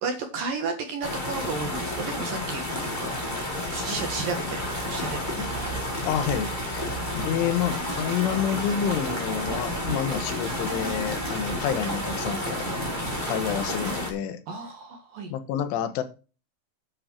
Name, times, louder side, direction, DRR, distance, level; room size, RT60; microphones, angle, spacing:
voice 1, 0.0-3.1 3.7-5.8 14.5-15.3, right 4 dB, 60° right, 5 dB, 2.7 m, -33 dB
sound 1, 1.0-14.1, left 1 dB, 10° left, 3.3 m, -31 dB
voice 2, 6.1-6.9 7.1-12.7 13.3-14.4 15.3-16.0, left 9 dB, 80° left, 11 dB, 3.7 m, -28 dB
sound 2, 7.7-14.1, right 6 dB, 80° right, 4.1 m, -38 dB
9.5 x 9.2 x 4.5 m, 0.33 s
omnidirectional pair, 5.6 m